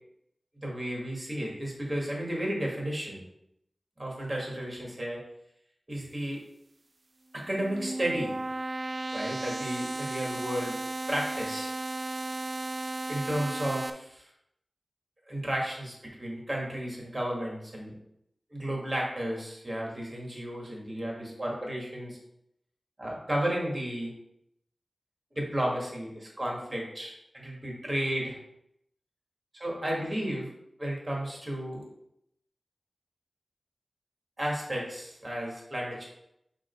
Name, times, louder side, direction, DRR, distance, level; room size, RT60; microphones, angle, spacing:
voice 1, 0.6-3.2 4.0-5.2 5.9-6.4 7.3-8.3 9.1-10.8 11.1-11.7 13.1-14.2 15.3-17.9 18.5-22.2 23.0-24.1 25.3-28.4 29.5-30.5 30.8-31.8 34.4-36.1, right 1 dB, 30° right, -2 dB, 2.2 m, -33 dB
sound 1, 7.4-13.9, right 2 dB, 50° right, 0.3 m, -35 dB
6.4 x 3.4 x 4.6 m, 0.78 s
wide cardioid pair, 70°, 0 cm